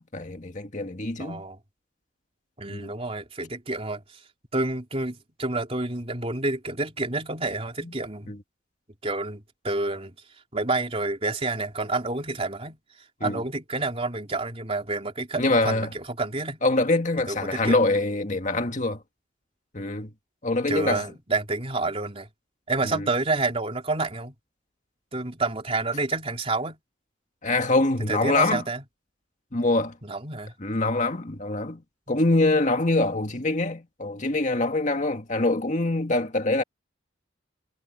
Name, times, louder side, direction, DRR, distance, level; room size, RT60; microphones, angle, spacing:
voice 1, 0.0-1.4 2.7-2.9 7.8-7.9 8.3-8.4 13.2-13.4 15.4-15.9 16.6-19.0 19.7-20.1 20.4-21.0 22.8-23.1 27.4-28.6 29.5-30.0 30.6-31.8 32.1-36.6, left 2 dB, 40° left, 1.9 m, -24 dB
voice 2, 1.2-1.6 2.6-4.0 4.5-8.3 9.0-10.2 10.5-12.8 13.2-16.6 17.3-17.8 20.7-22.3 22.7-24.3 25.1-26.8 28.1-28.8 30.0-30.5 32.1-32.2, right 3 dB, 30° right, 3.7 m, -29 dB
head